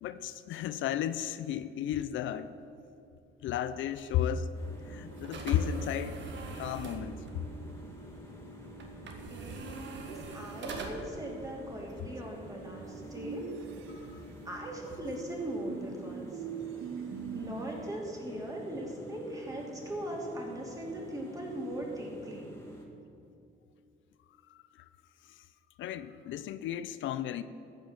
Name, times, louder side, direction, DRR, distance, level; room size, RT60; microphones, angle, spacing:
voice 1, 0.0-2.5 3.4-4.5 4.9-6.2 6.6-7.2 14.1-14.3 17.1-17.3 24.5-24.9 25.3-25.4 25.8-27.4, left 10 dB, 75° left, 0.5 m, -34 dB
sound 1, 3.8-14.6, right 3 dB, 65° right, 1.6 m, -46 dB
sound 2, 4.5-22.9, right 1 dB, 15° left, 2.0 m, -48 dB
voice 2, 10.0-13.4 14.4-16.4 17.3-22.5, right 1 dB, 15° right, 2.8 m, -39 dB
sound 3, 13.2-14.4 15.7-17.9, right 7 dB, 90° right, 0.7 m, -41 dB
14.5 x 5.3 x 7.4 m
cardioid pair, 90°, 20 cm